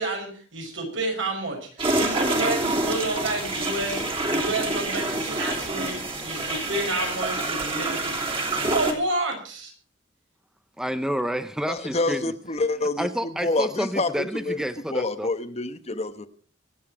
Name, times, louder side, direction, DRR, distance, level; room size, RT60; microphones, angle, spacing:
voice 1, 0.0-8.2 8.5-9.7, right 2 dB, 80° right, 2 dB, 5.9 m, -30 dB
sound 1, 1.8-8.9, right 2 dB, 30° right, 3.0 m, -27 dB
voice 2, 10.8-12.3 13.0-15.3, equal, 5° right, 11 dB, 0.6 m, -29 dB
voice 3, 11.7-13.1 13.4-14.6 14.9-16.3, left 2 dB, 35° left, 10 dB, 1.1 m, -27 dB
24.5 x 8.4 x 4.7 m, 0.43 s
head